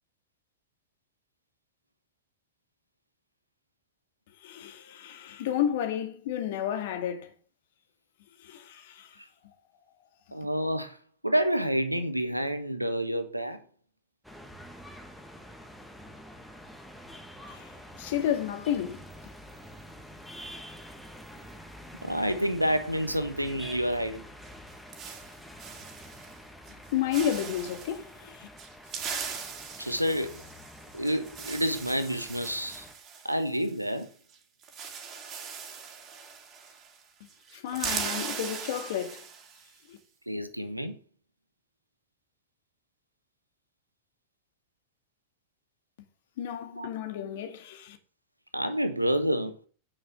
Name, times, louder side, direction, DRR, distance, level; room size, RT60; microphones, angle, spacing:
voice 1, 4.4-7.3 8.4-9.2 9.4-9.5 17.5-19.1 26.9-28.5 37.5-39.3 39.9-40.0 46.4-48.0, left 10 dB, 55° left, 2.2 m, -32 dB
voice 2, 10.3-11.0 11.2-13.6 22.0-24.2 29.8-30.4 30.9-32.9 33.2-34.1 38.0-38.3 40.3-40.9 46.7-46.9 48.5-49.6, equal, 90° right, 1.3 m, -28 dB
sound 1, 14.2-32.9, equal, ahead, 1.9 m, -47 dB
sound 2, 24.4-26.4 26.7-26.9 27.1-28.0 28.6-34.0 34.3-34.4 34.6-37.0 37.3-39.7, right 6 dB, 30° right, 2.8 m, -39 dB
9.3 x 6.6 x 7.7 m
figure-of-eight pair, 90°, 0 cm